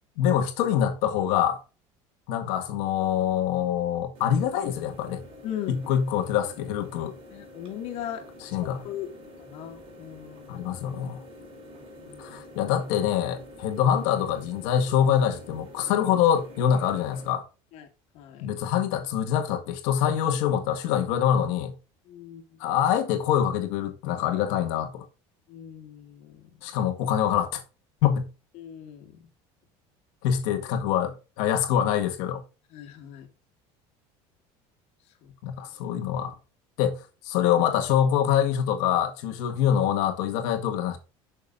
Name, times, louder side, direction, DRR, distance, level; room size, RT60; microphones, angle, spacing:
voice 1, 0.2-1.6 2.3-5.2 5.7-7.2 8.4-8.8 10.5-11.2 12.2-17.4 18.4-21.7 22.6-25.0 26.6-27.6 28.0-28.2 30.2-32.4 35.4-36.3 36.8-41.0, left 9 dB, 75° left, 1.8 m, -25 dB
sound 1, 4.1-17.3, left 1 dB, 50° right, 4.5 m, -47 dB
voice 2, 5.4-5.9 7.3-8.3 8.6-10.6 12.0-12.7 17.7-17.9 18.1-18.5 22.1-22.8 25.5-26.5 28.6-29.2 32.7-33.3 35.2-35.3, left 10 dB, 55° left, 2.4 m, -39 dB
9.5 x 6.5 x 2.6 m
cardioid pair, 150°, 13 cm